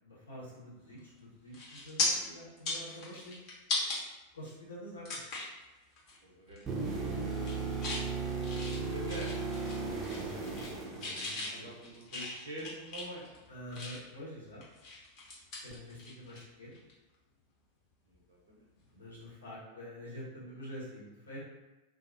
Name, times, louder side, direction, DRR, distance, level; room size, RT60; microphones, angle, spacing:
voice 1, 0.0-3.4 4.3-5.2 7.2-7.6 10.1-11.7 13.5-14.6 15.6-16.8 18.9-21.4, equal, 75° left, -7 dB, 0.9 m, -47 dB
sound 1, 1.0-1.2 1.5-2.1 2.5-4.0 4.4-4.5 5.0-5.5 6.0-6.2 6.5-6.9 7.3-8.0 8.4-9.8 10.0-10.7 11.0-14.2 14.6-16.4 16.7-16.9 18.8-18.9, left 3 dB, 40° left, 0.8 m, -38 dB
voice 2, 6.2-6.6 8.4-9.6 11.4-13.2 18.0-19.3 19.7-19.8, right 1 dB, 65° right, -3 dB, 0.6 m, -46 dB
sound 2, 6.7-11.7 15.7-15.8, right 4 dB, 20° right, 0.5 m, -36 dB
2.3 x 2.1 x 2.6 m, 1.1 s
figure-of-eight pair, 90°, 0 cm